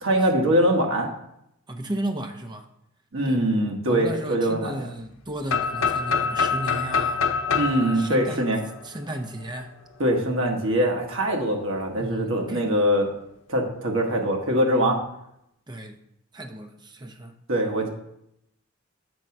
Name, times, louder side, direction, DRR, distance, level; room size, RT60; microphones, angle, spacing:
voice 1, 0.0-1.1 3.1-4.9 7.5-8.6 10.0-13.1 13.5-15.0 17.5-17.9, equal, 70° right, 1 dB, 1.4 m, -23 dB
voice 2, 1.7-2.7 3.2-3.4 3.8-7.2 7.8-8.6 8.8-9.7 12.0-12.7 15.7-16.0 16.3-17.4, right 1 dB, 20° right, 6 dB, 0.7 m, -34 dB
sound 1, 5.5-9.3, left 5 dB, 85° left, 0.7 m, -26 dB
7.7 x 3.7 x 5.9 m, 0.79 s
head